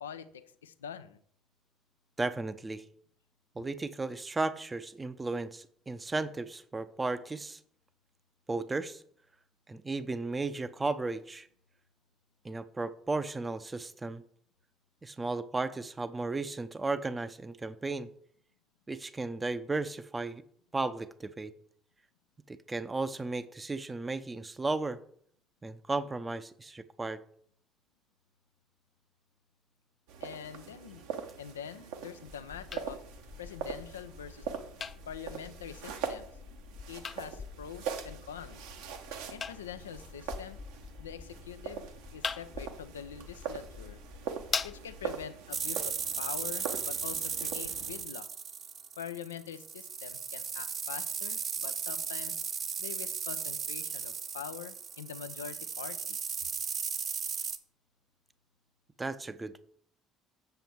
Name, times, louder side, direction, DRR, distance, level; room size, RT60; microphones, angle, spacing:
voice 1, 0.0-1.2 30.2-31.0 31.4-33.0 33.4-34.5 35.1-36.4 36.9-38.6 39.3-40.6 41.0-44.0 44.6-48.3 49.0-52.4 52.8-56.2, left 8 dB, 85° left, 0.5 m, -44 dB
voice 2, 2.2-2.8 3.6-7.6 8.5-9.0 9.7-11.5 12.4-14.2 15.0-18.1 18.9-20.4 20.7-21.5 22.5-25.0 25.6-27.2 59.0-59.7, right 3 dB, 20° right, 0.6 m, -35 dB
sound 1, 30.1-48.0, right 7 dB, 70° right, 1.0 m, -42 dB
sound 2, 32.3-45.3, left 5 dB, 35° left, 0.5 m, -43 dB
sound 3, 45.5-57.6, right 6 dB, 45° right, 0.9 m, -36 dB
7.8 x 7.0 x 4.5 m
figure-of-eight pair, 60°, 0 cm